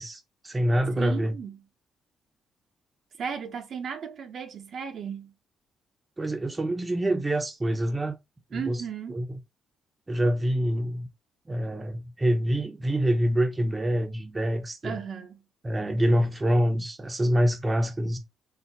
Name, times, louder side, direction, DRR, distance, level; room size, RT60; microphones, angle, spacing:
voice 1, 0.0-1.3 6.2-8.2 8.5-8.8 9.1-9.3 10.1-11.1 11.5-15.0 15.6-18.2, equal, 20° right, 0.7 m, -26 dB
voice 2, 1.0-1.6 3.2-5.3 8.5-9.1 14.8-15.4, right 7 dB, 60° right, 0.8 m, -35 dB
4.1 x 2.1 x 4.0 m
cardioid pair, 90°, 0 cm